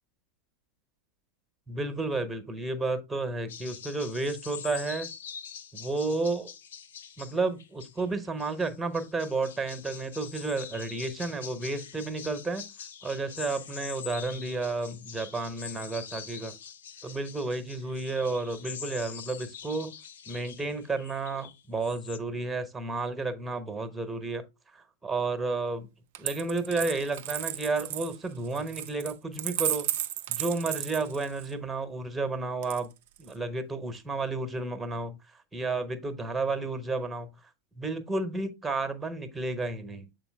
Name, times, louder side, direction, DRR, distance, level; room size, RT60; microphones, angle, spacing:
voice 1, 1.7-5.1 5.7-6.5 7.2-12.7 13.0-16.5 17.0-19.9 20.3-24.4 24.7-25.9 26.2-29.8 30.3-32.9 33.2-35.2 35.5-37.3 37.8-40.1, right 3 dB, 5° right, 1.1 m, -32 dB
sound 1, 3.5-22.2, left 8 dB, 60° left, 0.7 m, -44 dB
Coin (dropping), 26.1-31.5 32.6-33.3, right 12 dB, 50° right, 0.5 m, -34 dB
7.7 x 4.0 x 3.4 m
figure-of-eight pair, 90°, 0 cm